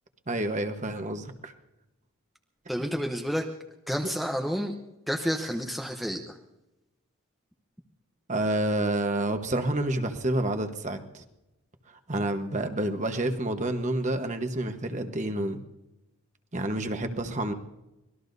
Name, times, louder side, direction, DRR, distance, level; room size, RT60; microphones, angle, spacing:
voice 1, 0.3-1.5 2.8-2.9 8.3-11.2 12.1-15.6 16.5-17.5, right 1 dB, 35° right, 6 dB, 1.2 m, -29 dB
voice 2, 2.7-3.5 3.9-4.7 5.1-6.4, equal, ahead, 2 dB, 0.8 m, -30 dB
25.0 x 19.5 x 2.7 m, 0.96 s
head